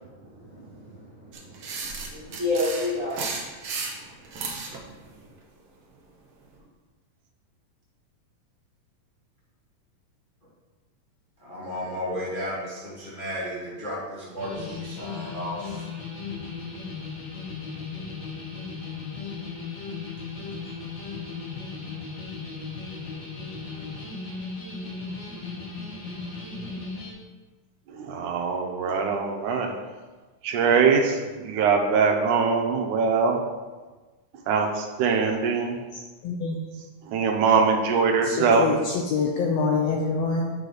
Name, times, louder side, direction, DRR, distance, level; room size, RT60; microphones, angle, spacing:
voice 1, 0.0-3.3, left 2 dB, 35° right, 1.5 m, -31 dB
sound 1, 1.3-4.8, right 4 dB, 65° right, 1.3 m, -33 dB
voice 2, 11.4-15.9, equal, 30° left, 1.0 m, -34 dB
sound 2, 14.4-27.1, left 4 dB, 50° left, 1.5 m, -36 dB
voice 3, 27.9-29.7 30.4-33.4 34.5-35.8 37.1-38.7, right 5 dB, 85° right, 2.3 m, -22 dB
voice 4, 36.2-36.6 38.2-40.5, left 4 dB, 75° left, 1.6 m, -25 dB
8.6 x 4.9 x 4.0 m
omnidirectional pair, 3.5 m